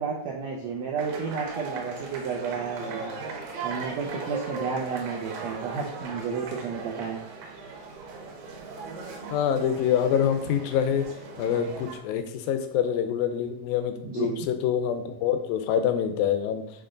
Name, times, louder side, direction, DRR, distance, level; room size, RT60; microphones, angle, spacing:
voice 1, 0.0-3.1 3.6-7.2 14.0-14.5, right 5 dB, 90° right, -1 dB, 1.5 m, -31 dB
sound 1, 1.0-12.0, right 4 dB, 70° right, 2.8 m, -38 dB
voice 2, 9.3-11.1 11.4-16.6, left 9 dB, 80° left, 7 dB, 2.3 m, -26 dB
8.2 x 3.2 x 3.9 m, 0.76 s
omnidirectional pair, 4.1 m